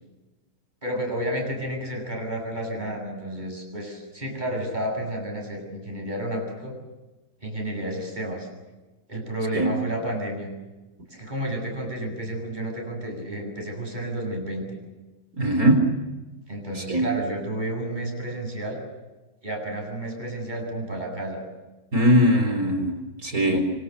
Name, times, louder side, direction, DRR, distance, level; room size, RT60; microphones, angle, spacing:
voice 1, 0.8-6.8 7.4-8.5 9.1-10.5 11.1-14.8 16.5-18.8 19.4-21.4 23.4-23.6, right 1 dB, 20° right, 1 dB, 8.2 m, -31 dB
voice 2, 15.4-15.9 16.9-17.1 21.9-23.6, equal, 45° right, 6 dB, 4.6 m, -20 dB
26.5 x 25.5 x 6.9 m, 1.1 s
omnidirectional pair, 2.2 m